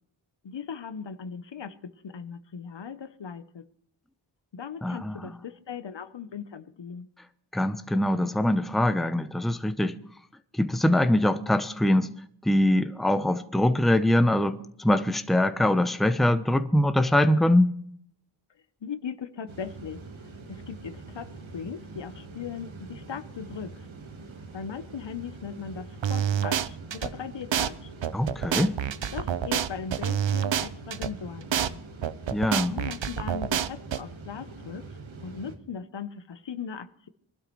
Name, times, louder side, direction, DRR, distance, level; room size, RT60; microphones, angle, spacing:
voice 1, 0.4-3.6 4.5-7.1 18.8-20.0 20.5-23.9 24.5-27.9 29.1-31.8 32.7-37.1, left 7 dB, 65° left, 0.9 m, -38 dB
voice 2, 4.8-5.3 7.5-10.0 10.5-12.1 12.4-17.7 28.1-28.8 32.3-32.7, left 1 dB, ahead, 0.7 m, -23 dB
sound 1, 19.5-35.6, right 3 dB, 90° right, 1.5 m, -44 dB
sound 2, 26.0-27.1 27.5-27.7 28.0-31.1 31.5-31.7 32.0-34.0, right 9 dB, 70° right, 0.7 m, -27 dB
22.5 x 12.0 x 3.1 m
wide cardioid pair, 65°, 46 cm